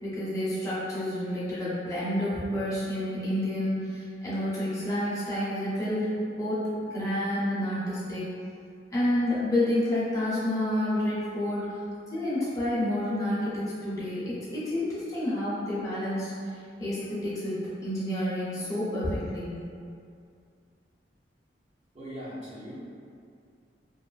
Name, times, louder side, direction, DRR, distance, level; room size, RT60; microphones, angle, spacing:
voice 1, 0.0-6.1 6.3-6.6 6.9-8.2 8.9-11.6 12.1-16.3 16.8-17.5 17.8-19.5, left 1 dB, 20° left, -10 dB, 0.6 m, -29 dB
voice 2, 21.9-22.7, equal, 40° right, -10 dB, 0.7 m, -39 dB
2.6 x 2.3 x 2.3 m, 2.3 s
head